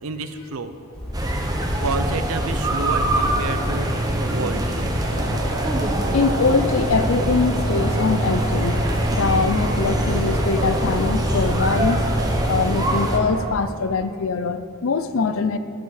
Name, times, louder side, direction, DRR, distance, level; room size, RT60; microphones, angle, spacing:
voice 1, 0.0-0.7 1.6-4.6, right 4 dB, 75° right, 10 dB, 0.6 m, -30 dB
sound 1, 0.9-12.4, equal, 5° left, 2.2 m, -30 dB
sound 2, 1.1-13.2, right 1 dB, 20° right, 1.1 m, -24 dB
sound 3, 5.0-13.5, right 2 dB, 55° right, 1.3 m, -32 dB
voice 2, 6.1-8.8 9.1-12.0 12.5-15.6, left 4 dB, 70° left, 11 dB, 0.6 m, -23 dB
11.5 x 8.2 x 4.9 m, 2.5 s
head